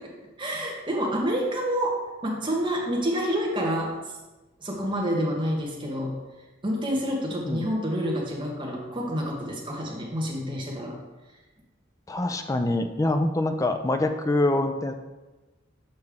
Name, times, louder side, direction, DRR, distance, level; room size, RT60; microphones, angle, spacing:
voice 1, 0.4-3.9 4.6-6.1 6.6-10.9, equal, 25° right, -1 dB, 1.2 m, -28 dB
voice 2, 12.1-14.9, left 2 dB, 15° left, 7 dB, 0.4 m, -25 dB
6.7 x 5.3 x 3.5 m, 1.1 s
head